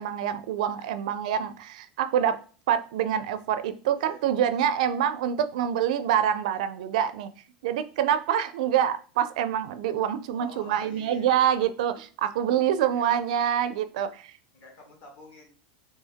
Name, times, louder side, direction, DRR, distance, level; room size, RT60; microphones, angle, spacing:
voice 1, 0.0-2.4 2.7-7.3 7.6-14.3, right 9 dB, 70° right, 12 dB, 0.4 m, -26 dB
voice 2, 10.3-11.3 12.5-12.6 12.9-13.2 14.5-15.5, left 2 dB, 40° left, 0 dB, 1.6 m, -48 dB
4.4 x 3.0 x 3.4 m, 0.39 s
supercardioid pair, 170°, 4 cm